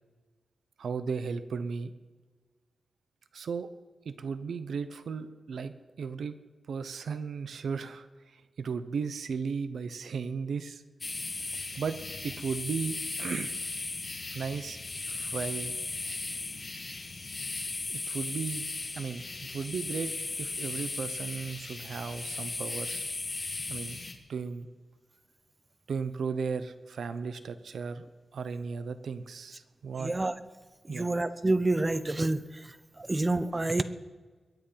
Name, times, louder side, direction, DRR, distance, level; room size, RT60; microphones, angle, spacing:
voice 1, 0.8-1.9 3.3-3.7 4.0-6.3 6.7-10.8 11.8-12.0 12.2-13.6 14.3-15.7 17.9-18.7 19.0-20.1 20.4-23.1 23.7-24.0 24.3-24.7 25.9-28.0 28.3-30.1 30.9-31.2, right 5 dB, 85° right, 12 dB, 0.9 m, -35 dB
sound 1, 11.0-24.1, left 3 dB, 35° left, 1.9 m, -37 dB
voice 2, 30.0-30.3 30.9-32.4 33.0-33.8, right 2 dB, 20° right, 13 dB, 0.8 m, -27 dB
22.0 x 9.4 x 5.7 m, 1.4 s
wide cardioid pair, 120°, 0 cm